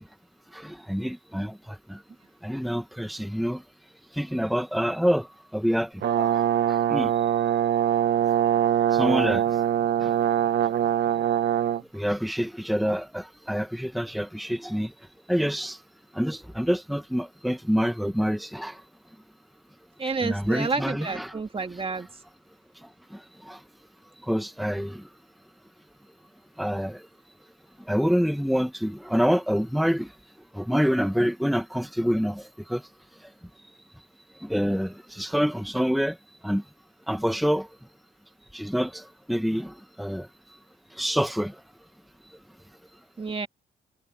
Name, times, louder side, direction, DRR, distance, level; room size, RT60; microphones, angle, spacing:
voice 1, 0.5-2.0 2.4-3.6 4.1-5.3 5.5-5.9 6.2-6.4 6.7-7.1 8.9-9.4 10.0-10.1 11.9-14.9 15.3-15.8 16.1-18.8 20.2-21.4 23.1-23.6 24.3-25.0 26.6-27.0 27.9-30.1 30.5-32.8 34.4-36.2 36.4-36.6 37.1-37.7 38.5-40.3 41.0-41.6, equal, ahead, 1.7 m, -27 dB
Brass instrument, 6.0-11.8, right 10 dB, 60° right, 1.3 m, -23 dB
voice 2, 20.0-22.1 43.2-43.5, right 4 dB, 30° right, 2.2 m, -30 dB
cardioid pair, 90°, 20 cm